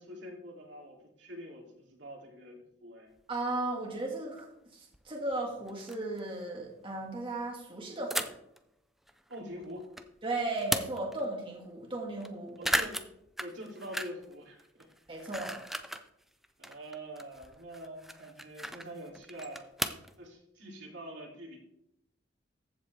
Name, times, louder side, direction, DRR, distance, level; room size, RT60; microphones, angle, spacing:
voice 1, 0.0-3.1 9.3-9.9 12.6-13.0 13.4-14.8 15.2-15.3 16.6-19.7 20.2-21.6, equal, 75° right, -1 dB, 3.0 m, -45 dB
sound 1, 3.2-3.3 4.4-4.5 4.9-5.0 5.3-5.4 5.7-6.2 8.1-8.6 9.1-10.1 10.4-11.2 11.6-11.7 11.9-12.3 12.6-14.3 14.6-16.1 16.4-20.1, equal, ahead, 0.6 m, -36 dB
voice 2, 3.3-8.3 10.2-12.6 15.1-15.6, right 2 dB, 30° right, -1 dB, 1.9 m, -36 dB
14.5 x 7.9 x 3.4 m, 0.77 s
head